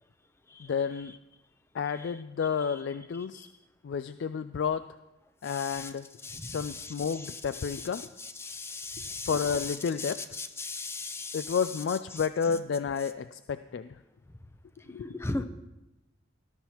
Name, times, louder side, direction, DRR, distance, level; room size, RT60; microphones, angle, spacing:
voice 1, 0.6-1.1 1.7-3.5 3.8-4.9 5.4-6.1 6.4-8.1 9.3-10.2 11.3-14.0 14.8-15.2, left 6 dB, 60° left, 12 dB, 0.3 m, -31 dB
voice 2, 8.4-9.3 10.6-11.4 15.1-15.4, left 2 dB, 15° left, 9 dB, 0.6 m, -35 dB
19.0 x 12.5 x 2.9 m, 0.98 s
head